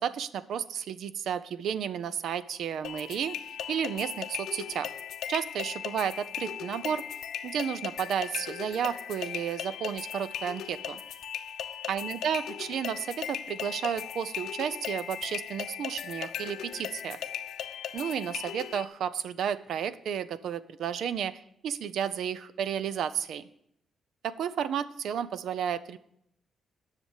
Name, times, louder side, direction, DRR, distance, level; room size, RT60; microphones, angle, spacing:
voice 1, 0.0-4.9 5.3-7.0 7.4-11.0 11.9-17.2 17.9-23.4 24.2-26.0, right 8 dB, 70° right, 15 dB, 0.5 m, -32 dB
sound 1, 2.8-18.8, left 9 dB, 75° left, 0.7 m, -38 dB
10.5 x 6.7 x 7.2 m, 0.73 s
cardioid pair, 155°, 0 cm